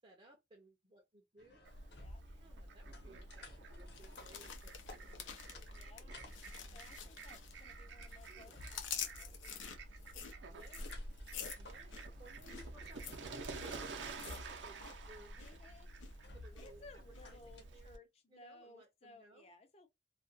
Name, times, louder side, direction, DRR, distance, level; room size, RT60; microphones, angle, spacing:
voice 1, 0.0-1.6 2.2-6.1 7.5-7.9 8.3-8.7 10.5-11.0 11.6-15.3 16.3-19.5, right 1 dB, 30° right, 0.6 m, -62 dB
sound 1, 1.4-17.6, left 2 dB, 60° left, 0.9 m, -59 dB
Fowl, 1.6-18.0, right 2 dB, 75° right, 0.6 m, -50 dB
sound 2, 3.9-7.7 8.0-15.0 15.2-15.6 16.0-16.7 17.1-17.2, left 8 dB, 85° left, 0.5 m, -48 dB
voice 2, 5.7-6.2 6.7-9.4 15.4-16.2 16.6-19.9, left 2 dB, 35° left, 0.6 m, -60 dB
2.3 x 2.3 x 2.5 m
head